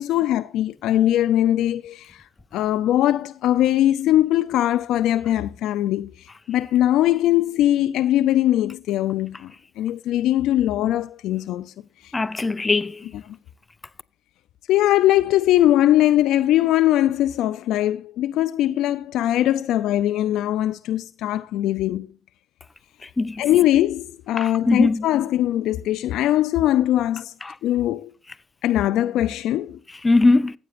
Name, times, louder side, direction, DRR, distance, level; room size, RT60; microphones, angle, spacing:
voice 1, 0.0-2.2 2.5-9.5 9.8-11.7 12.0-12.1 13.1-13.2 14.7-22.1 23.4-27.3 27.6-28.1 28.6-29.8, left 13 dB, 90° left, 0.4 m, -21 dB
voice 2, 12.1-13.0 23.2-23.4 24.4-25.0 30.0-30.5, left 3 dB, 25° left, 0.5 m, -19 dB
14.5 x 8.6 x 2.5 m
cardioid pair, 85°, 0 cm